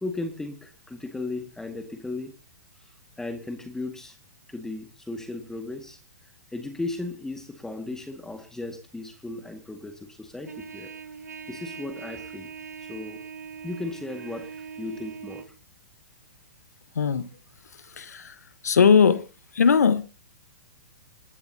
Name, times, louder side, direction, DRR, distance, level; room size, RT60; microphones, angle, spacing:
voice 1, 0.0-2.3 3.2-4.2 4.5-6.0 6.5-10.9 11.5-12.5 12.9-13.2 13.6-15.5, left 2 dB, 5° left, 1.8 m, -36 dB
Trumpet, 10.4-15.5, right 6 dB, 80° right, 1.1 m, -41 dB
voice 2, 16.9-17.3 17.9-18.4 18.6-19.2 19.5-20.0, left 6 dB, 75° left, 1.1 m, -19 dB
27.5 x 12.0 x 2.8 m
hypercardioid pair, 120°, 9 cm